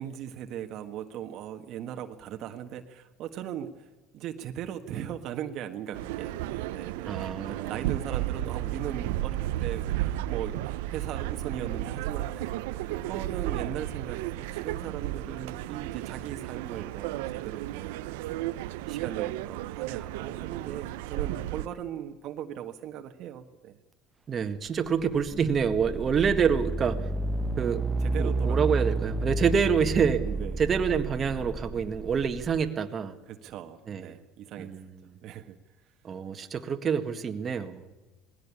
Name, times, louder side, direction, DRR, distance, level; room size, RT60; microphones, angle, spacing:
voice 1, 0.0-7.2 7.4-12.5 12.8-18.0 18.6-23.8 28.0-29.3 30.2-30.6 33.3-34.7 35.0-35.6, right 10 dB, 60° right, 6 dB, 1.6 m, -39 dB
sound 1, 5.9-21.7, right 14 dB, 85° right, 0.7 m, -33 dB
voice 2, 7.1-7.9 24.3-27.0 27.6-27.8 28.2-30.2 30.6-33.2 33.9-34.2 34.6-35.0 36.0-37.9, right 6 dB, 35° right, 6 dB, 1.8 m, -27 dB
sound 2, 24.7-32.7, right 2 dB, 20° right, 1.1 m, -31 dB
20.0 x 16.5 x 8.6 m, 1.1 s
supercardioid pair, 100°, 0 cm